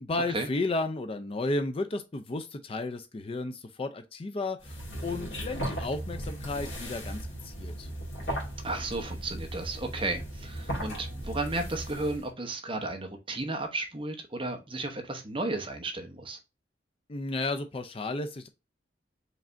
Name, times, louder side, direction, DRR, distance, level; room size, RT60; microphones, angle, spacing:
voice 1, 0.0-7.9 17.1-18.5, left 2 dB, 30° left, 0.4 m, -33 dB
sound 1, 4.6-12.3, right 1 dB, 65° left, 2.0 m, -37 dB
voice 2, 8.6-16.4, right 2 dB, 25° right, 0.9 m, -34 dB
4.8 x 3.3 x 2.6 m
head